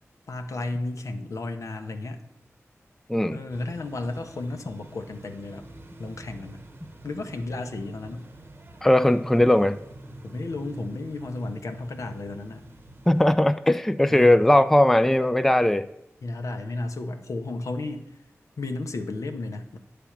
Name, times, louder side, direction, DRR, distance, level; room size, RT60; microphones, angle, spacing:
voice 1, 0.3-2.2 3.3-5.7 6.0-6.7 7.0-8.3 10.2-12.6 14.0-14.5 16.2-18.1 18.6-19.8, left 2 dB, 80° left, 6 dB, 0.8 m, -33 dB
sound 1, 3.5-13.3, right 2 dB, 45° right, 0.8 m, -47 dB
voice 2, 8.8-9.8 13.1-15.9, left 1 dB, 5° left, 11 dB, 0.3 m, -19 dB
10.0 x 3.4 x 7.1 m, 0.82 s
wide cardioid pair, 85°, 5 cm